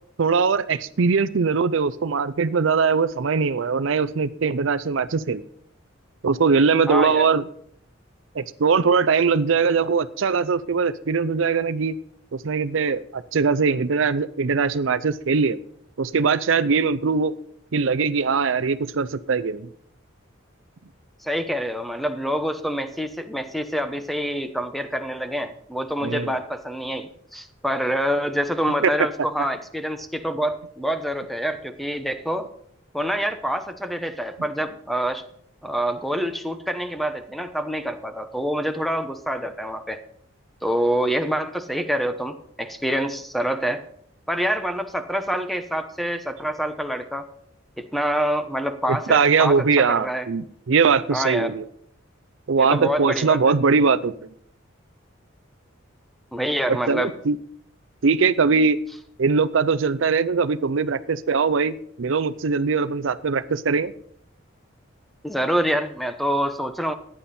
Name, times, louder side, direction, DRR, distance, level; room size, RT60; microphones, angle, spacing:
voice 1, 0.2-5.4 6.2-7.5 8.3-12.0 12.3-15.6 16.0-17.3 17.7-19.7 26.0-26.4 28.8-28.9 48.9-51.6 52.5-54.3 56.9-57.4 58.0-58.8 59.2-63.9, right 5 dB, 70° right, 15 dB, 0.5 m, -21 dB
voice 2, 6.9-7.3 21.2-32.5 32.9-35.2 35.6-40.0 40.6-43.8 44.3-47.3 47.8-50.3 51.1-51.5 52.6-53.4 56.3-57.1 65.2-66.9, equal, ahead, 8 dB, 0.9 m, -26 dB
14.5 x 10.0 x 4.3 m, 0.66 s
head